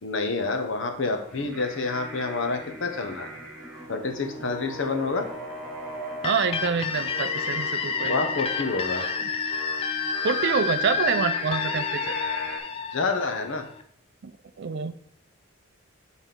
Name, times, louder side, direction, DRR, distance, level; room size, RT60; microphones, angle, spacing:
voice 1, 0.0-3.3 3.9-5.3 8.1-9.0 12.9-13.6, left 3 dB, 65° left, 5 dB, 0.8 m, -28 dB
Bowed string instrument, 1.2-8.6, right 1 dB, 70° right, 1.1 m, -49 dB
Singing, 1.3-12.6, equal, ahead, 1.0 m, -39 dB
sound 1, 6.2-13.8, left 5 dB, 25° left, 0.3 m, -29 dB
voice 2, 6.2-8.2 10.2-12.1 14.2-14.3 14.6-14.9, right 5 dB, 55° right, 12 dB, 0.4 m, -26 dB
7.1 x 4.1 x 3.7 m, 0.67 s
head